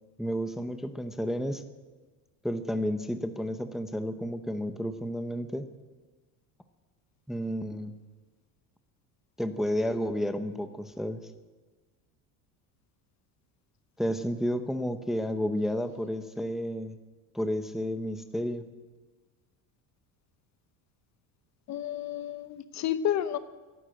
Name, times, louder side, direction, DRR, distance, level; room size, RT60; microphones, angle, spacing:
voice 1, 0.2-1.6 2.4-5.7 7.3-7.9 9.4-11.2 14.0-17.0 17.3-18.6, equal, ahead, 8 dB, 0.8 m, -31 dB
voice 2, 21.7-23.4, left 10 dB, 40° left, 13 dB, 0.9 m, -30 dB
15.0 x 11.5 x 7.7 m, 1.3 s
cardioid pair, 125°, 41 cm